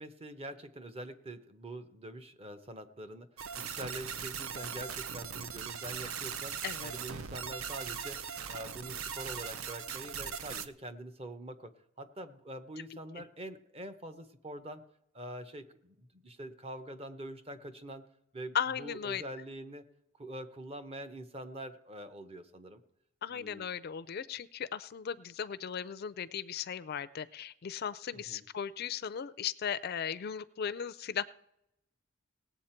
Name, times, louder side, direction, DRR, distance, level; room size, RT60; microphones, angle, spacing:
voice 1, 0.0-3.3 3.6-8.2 8.5-11.7 12.0-14.8 15.1-18.0 18.3-19.8 20.1-22.8 23.3-23.7 28.1-28.4, right 1 dB, 30° right, 9 dB, 0.8 m, -45 dB
sound 1, 3.4-10.7, right 7 dB, 75° right, 0.6 m, -40 dB
voice 2, 18.5-19.2 23.2-31.2, left 8 dB, 45° left, 16 dB, 0.4 m, -37 dB
18.5 x 8.0 x 4.4 m, 0.82 s
head